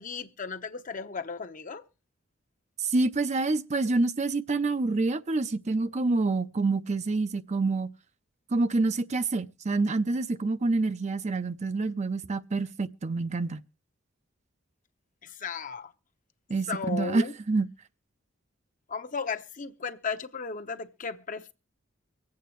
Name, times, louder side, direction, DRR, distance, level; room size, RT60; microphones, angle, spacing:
voice 1, 0.0-1.8 15.2-15.9 16.7-17.3 18.9-21.5, left 5 dB, 40° left, 0.8 m, -35 dB
voice 2, 2.8-7.9 8.5-13.6 16.5-17.7, right 3 dB, 35° right, 0.5 m, -27 dB
24.0 x 8.5 x 3.1 m
head